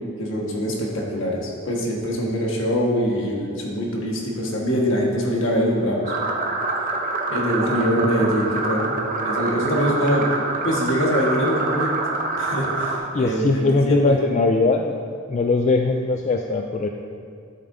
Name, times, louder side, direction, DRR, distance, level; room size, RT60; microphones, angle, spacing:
voice 1, 0.2-6.1 7.3-9.0 9.2-10.3 10.6-11.9 12.4-14.2, equal, 70° left, -2 dB, 1.5 m, -23 dB
sound 1, 6.0-13.0, right 3 dB, 40° right, 0.8 m, -26 dB
voice 2, 13.1-15.0 15.3-16.9, left 3 dB, 35° left, 3 dB, 0.3 m, -20 dB
12.0 x 6.8 x 2.7 m, 2.2 s
head